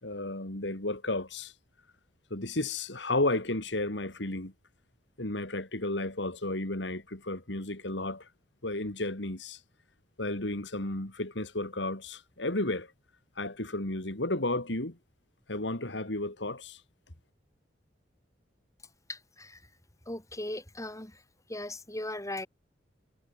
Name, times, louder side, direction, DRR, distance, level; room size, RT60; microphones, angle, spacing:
voice 1, 0.0-1.5 2.3-4.5 5.2-8.3 8.6-9.6 10.2-12.9 13.4-15.0 15.5-16.8, left 2 dB, 75° left, 3.5 m, -33 dB
voice 2, 19.1-19.7 20.1-21.2 21.5-22.5, left 1 dB, 20° left, 5.4 m, -38 dB
head